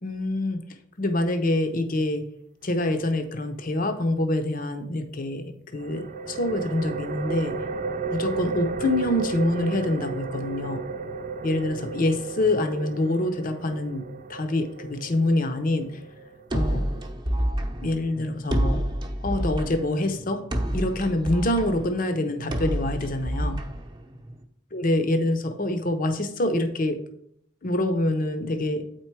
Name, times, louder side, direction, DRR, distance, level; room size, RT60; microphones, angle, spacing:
voice 1, 0.0-0.6 1.0-2.2 2.6-7.6 8.1-11.0 11.4-14.0 14.3-15.9 16.5-16.9 17.8-18.8 19.2-20.4 20.7-23.6 24.7-27.0 27.6-28.8, left 1 dB, 45° left, 7 dB, 0.7 m, -26 dB
sound 1, 5.7-17.1, right 4 dB, 40° right, 0.4 m, -34 dB
sound 2, 16.5-24.4, equal, 20° right, 0.8 m, -29 dB
8.2 x 4.5 x 4.6 m, 0.70 s
head